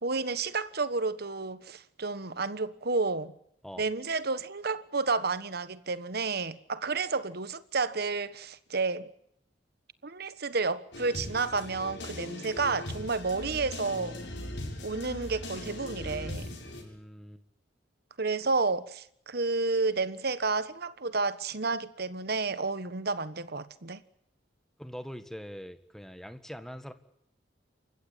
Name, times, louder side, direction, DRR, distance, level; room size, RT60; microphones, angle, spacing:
voice 1, 0.0-3.3 3.8-9.1 10.0-14.2 14.8-16.5 18.2-24.0, right 4 dB, 60° right, 1.4 m, -31 dB
sound 1, 10.9-16.8, left 1 dB, 70° left, 7.3 m, -39 dB
voice 2, 16.7-17.4 24.8-26.9, equal, ahead, 1.7 m, -43 dB
28.5 x 15.5 x 9.1 m
head